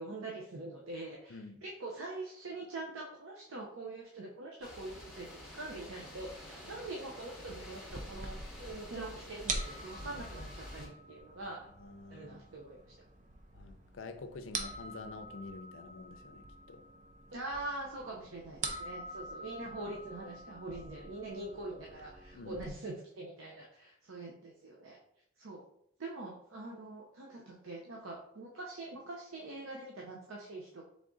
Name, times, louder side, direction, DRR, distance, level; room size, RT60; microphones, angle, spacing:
voice 1, 0.0-5.3 5.5-11.6 12.1-12.8 17.3-25.0 25.4-25.6 26.0-30.8, right 2 dB, 75° right, -1 dB, 0.7 m, -44 dB
sound 1, 4.6-10.9, left 1 dB, 5° right, 0.9 m, -49 dB
sound 2, 7.9-22.7, right 3 dB, 35° right, 0.5 m, -45 dB
voice 2, 11.4-12.4 13.5-16.8 22.3-22.7, left 3 dB, 70° left, 8 dB, 0.5 m, -48 dB
3.7 x 3.5 x 3.8 m, 0.72 s
head